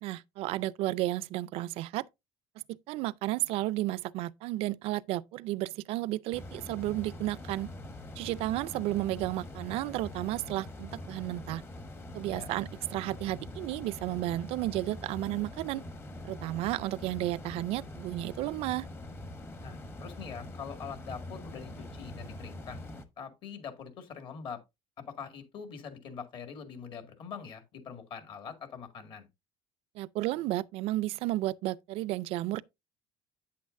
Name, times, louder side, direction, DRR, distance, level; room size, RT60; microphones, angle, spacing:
voice 1, 0.0-2.0 2.7-7.7 8.2-11.6 12.1-15.8 16.2-18.9 30.0-32.6, right 16 dB, 70° right, 0.4 m, -33 dB
sound 1, 6.3-23.0, left 1 dB, 20° left, 0.9 m, -44 dB
voice 2, 19.6-22.8 23.2-24.6 25.0-29.3, left 6 dB, 50° left, 2.0 m, -43 dB
8.7 x 8.4 x 2.6 m
cardioid pair, 150°, 11 cm